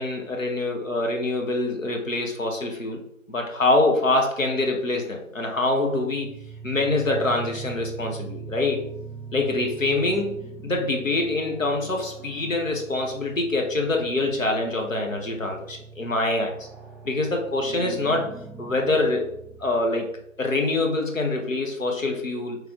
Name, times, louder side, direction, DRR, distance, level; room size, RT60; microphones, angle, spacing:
voice 1, 0.0-3.0 3.3-6.3 6.6-8.8 9.3-10.4 10.6-16.7 17.0-18.3 18.6-19.3 19.6-20.1 20.4-22.6, left 2 dB, 70° left, 2 dB, 0.9 m, -25 dB
sound 1, 5.8-20.4, right 5 dB, ahead, 0.3 m, -41 dB
3.2 x 3.0 x 3.6 m, 0.75 s
figure-of-eight pair, 175°, 41 cm